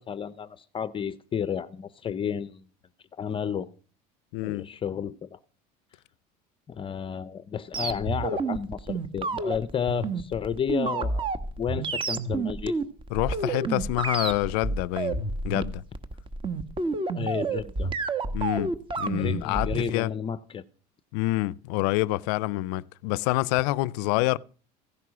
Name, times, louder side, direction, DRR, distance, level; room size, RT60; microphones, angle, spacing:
voice 1, 0.0-2.6 3.1-3.7 4.4-5.4 6.7-11.3 11.6-12.8 17.2-17.9 19.1-20.6, left 8 dB, 25° left, 0.6 m, -32 dB
voice 2, 4.3-4.7 13.1-15.8 18.3-18.7 19.0-20.1 21.1-24.4, left 19 dB, 80° left, 0.6 m, -27 dB
sound 1, 7.7-19.9, right 3 dB, 25° right, 1.4 m, -29 dB
15.5 x 11.0 x 6.1 m
supercardioid pair, 125°, 20 cm